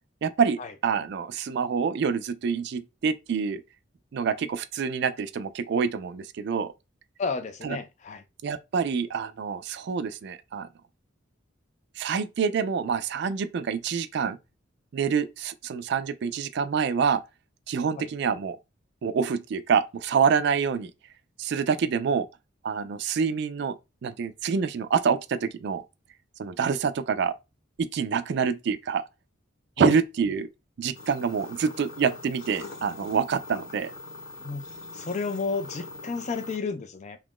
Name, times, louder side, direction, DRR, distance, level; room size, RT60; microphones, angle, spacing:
voice 1, 0.2-3.6 4.1-6.7 7.6-7.8 8.4-10.7 12.0-14.4 14.9-17.2 17.7-18.6 19.0-20.9 21.4-22.3 22.6-23.8 24.0-25.8 26.4-27.3 27.8-29.0 29.8-30.5 30.8-33.9, right 6 dB, 55° right, 0.3 m, -26 dB
voice 2, 7.2-8.2 18.0-18.1 29.8-29.9 34.4-34.6 34.9-37.2, left 4 dB, 35° left, 0.4 m, -31 dB
sound 1, 30.9-36.6, left 2 dB, 75° left, 1.2 m, -42 dB
2.9 x 2.4 x 3.5 m
head